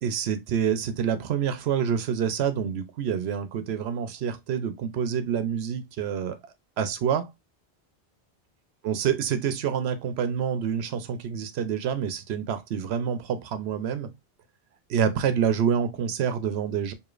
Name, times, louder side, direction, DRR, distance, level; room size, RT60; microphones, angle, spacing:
voice 1, 0.0-7.3 8.8-14.1 14.9-16.9, right 8 dB, 85° right, 0.9 m, -27 dB
4.8 x 2.8 x 2.4 m
omnidirectional pair, 1.0 m